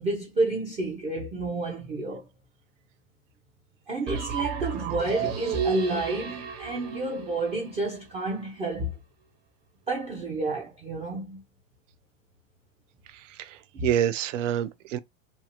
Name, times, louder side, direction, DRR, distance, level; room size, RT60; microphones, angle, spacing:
voice 1, 0.0-2.3 3.9-8.9 9.9-11.4 13.7-13.9, right 2 dB, 15° right, 0.4 m, -30 dB
sound 1, 4.1-8.0, right 7 dB, 50° right, 1.2 m, -32 dB
voice 2, 13.4-15.0, right 10 dB, 65° right, 0.6 m, -27 dB
2.8 x 2.4 x 2.8 m
hypercardioid pair, 120°, 40 cm